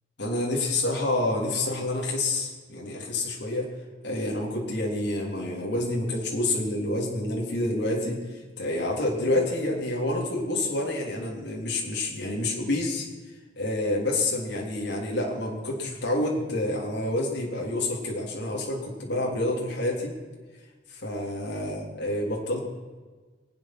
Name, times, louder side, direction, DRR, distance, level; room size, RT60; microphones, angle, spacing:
voice 1, 0.2-3.7 4.0-13.1 13.6-20.1 20.9-22.6, left 1 dB, 70° left, -3 dB, 3.4 m, -28 dB
26.0 x 8.8 x 6.1 m, 1.3 s
head